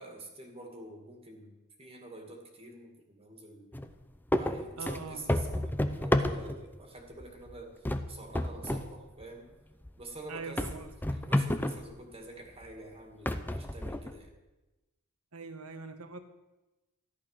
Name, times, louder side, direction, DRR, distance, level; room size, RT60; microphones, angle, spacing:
voice 1, 0.0-1.5 1.8-3.7 4.3-9.5 10.0-10.8 11.1-14.3, right 2 dB, 25° right, 3 dB, 2.1 m, -47 dB
sound 1, 3.7-3.9 4.3-6.8 7.2-7.5 7.8-8.9 9.2-9.3 9.8-9.9 10.6-11.9 12.6-12.7 13.3-14.3, left 1 dB, 10° left, 0.7 m, -30 dB
voice 2, 4.8-5.3 10.3-10.9 15.3-16.2, right 4 dB, 85° right, 8 dB, 1.5 m, -42 dB
14.0 x 11.0 x 6.5 m, 1.1 s
head